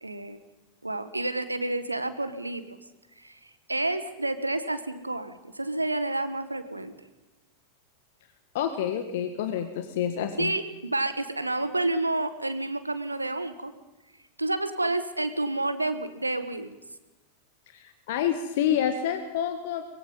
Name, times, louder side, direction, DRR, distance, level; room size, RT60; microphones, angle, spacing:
voice 1, 0.0-0.4 0.8-2.8 3.2-6.9 10.4-13.7 14.4-16.8, right 2 dB, 85° right, 12 dB, 1.7 m, -29 dB
voice 2, 8.5-10.5 17.7-19.8, left 9 dB, 55° left, 8 dB, 1.8 m, -28 dB
23.5 x 22.5 x 5.6 m, 1.1 s
figure-of-eight pair, 90°, 0 cm